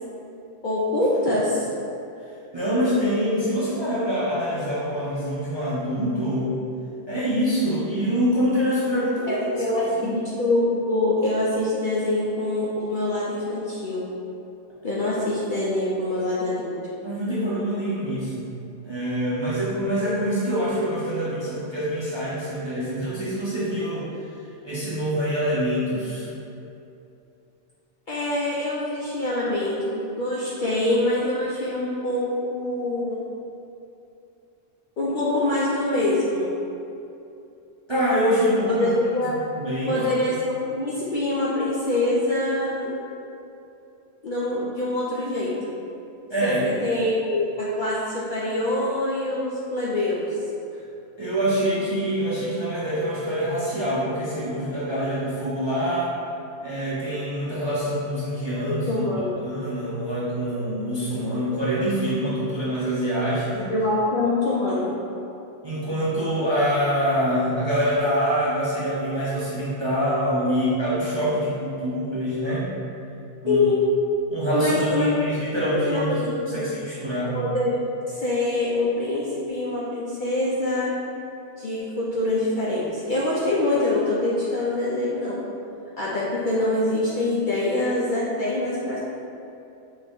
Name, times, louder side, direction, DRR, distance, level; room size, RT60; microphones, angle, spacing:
voice 1, 0.6-1.7 9.3-14.0 14.8-16.7 28.1-33.2 35.0-36.5 38.7-39.4 39.9-43.0 44.2-45.7 46.4-50.4 58.5-59.4 63.7-64.9 73.5-73.9 74.5-75.2 75.6-76.7 77.3-81.0 81.6-85.5 86.0-89.0, left 2 dB, 60° left, -7 dB, 0.5 m, -25 dB
voice 2, 2.5-6.5 7.1-10.1 17.0-18.5 18.8-24.1 24.6-26.3 37.9-38.9 39.5-40.1 46.3-46.8 51.2-56.1 56.6-59.0 59.4-63.7 65.6-72.7 73.4-73.6 74.3-76.2 76.5-77.4, equal, 35° right, -9 dB, 0.4 m, -25 dB
3.9 x 2.6 x 3.4 m, 2.7 s
omnidirectional pair, 1.3 m